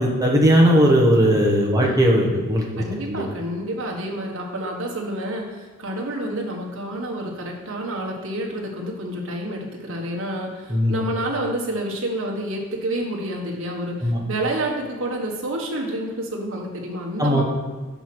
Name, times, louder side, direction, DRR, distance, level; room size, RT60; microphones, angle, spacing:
voice 1, 0.0-3.2 10.7-11.0 14.0-14.2 17.2-17.4, equal, 15° right, -1 dB, 1.2 m, -18 dB
voice 2, 1.6-2.0 2.8-17.4, right 1 dB, 65° right, -1 dB, 1.5 m, -29 dB
6.2 x 5.4 x 6.0 m, 1.4 s
head